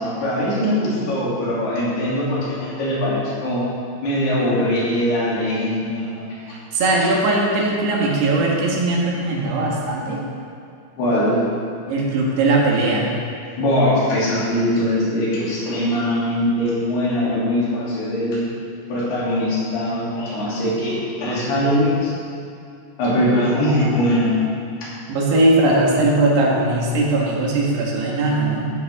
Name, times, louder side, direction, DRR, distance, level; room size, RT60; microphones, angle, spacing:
voice 1, 0.0-3.6 4.0-6.3 11.0-11.5 13.6-18.4 18.9-22.1 23.0-24.4 24.8-24.9, left 1 dB, 75° left, -8 dB, 5.0 m, -21 dB
voice 2, 6.5-10.2 11.9-13.1 25.1-28.6, right 2 dB, 80° right, -3 dB, 3.8 m, -19 dB
14.0 x 10.5 x 3.7 m, 2.5 s
omnidirectional pair, 4.7 m